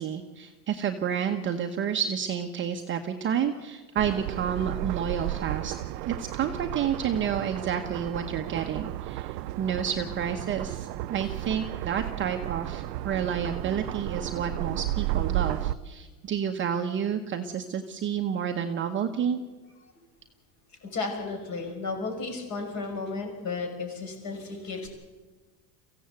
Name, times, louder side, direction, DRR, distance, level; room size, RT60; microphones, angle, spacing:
voice 1, 0.0-5.7 6.1-19.4, right 8 dB, 25° right, 5 dB, 1.1 m, -30 dB
sound 1, 4.0-15.7, right 15 dB, 85° right, 0.8 m, -33 dB
voice 2, 20.8-24.9, left 3 dB, 35° left, 4 dB, 5.7 m, -33 dB
24.0 x 16.0 x 8.2 m, 1.2 s
supercardioid pair, 155°, 50 cm